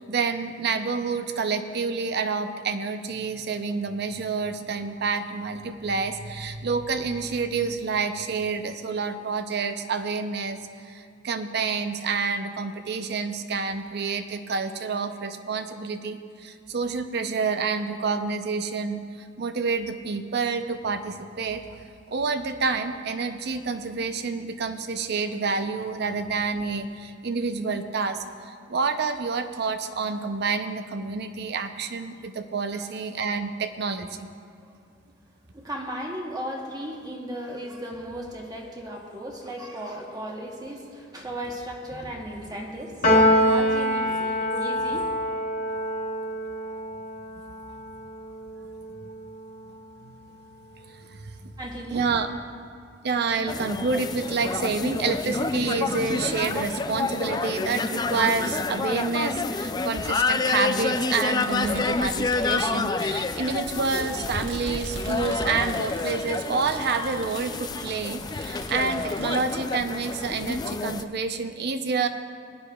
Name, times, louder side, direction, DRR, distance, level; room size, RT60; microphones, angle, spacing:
voice 1, 0.0-10.6 10.8-21.6 22.1-34.3 49.0-49.1 50.0-50.1 50.9-51.5 51.9-52.3 53.0-72.1, right 4 dB, 60° right, 9 dB, 0.6 m, -28 dB
voice 2, 35.5-45.1 51.6-52.3, equal, 20° right, 0 dB, 1.0 m, -36 dB
Piano, 43.0-49.5, equal, 50° left, 1.5 m, -25 dB
sound 1, 53.5-71.0, left 3 dB, 20° left, 0.3 m, -29 dB
Fireworks, 56.7-56.8 58.0-58.1 59.3-59.4 61.1-69.8, right 2 dB, 85° right, 1.4 m, -41 dB
19.5 x 9.9 x 2.3 m, 2.3 s
head